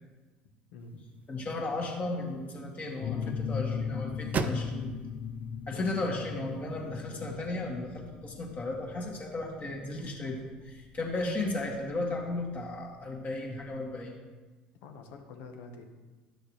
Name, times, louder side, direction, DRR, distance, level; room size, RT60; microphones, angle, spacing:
voice 1, 0.7-1.0 5.7-5.9 14.8-15.9, left 4 dB, 70° left, 4 dB, 1.1 m, -46 dB
sound 1, 0.8-7.0, right 5 dB, 35° right, 0.5 m, -41 dB
voice 2, 1.3-4.9 5.7-14.1, left 2 dB, 35° left, -1 dB, 2.1 m, -35 dB
sound 2, 3.0-12.4, left 6 dB, 55° left, 0.6 m, -38 dB
10.0 x 6.3 x 3.2 m, 1.3 s
hypercardioid pair, 80°, 4 cm